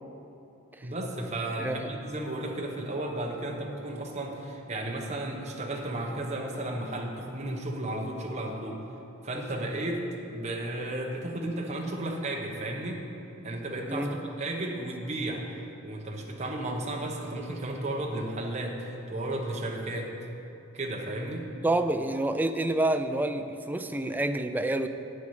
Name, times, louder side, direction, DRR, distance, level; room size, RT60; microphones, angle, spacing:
voice 1, 0.8-8.8 9.2-13.0 13.4-15.4 15.8-20.3 20.7-21.5, right 1 dB, 35° right, 0 dB, 1.0 m, -33 dB
voice 2, 13.9-14.2 21.6-24.9, right 1 dB, 10° right, 8 dB, 0.3 m, -28 dB
11.0 x 8.7 x 4.8 m, 2.8 s
head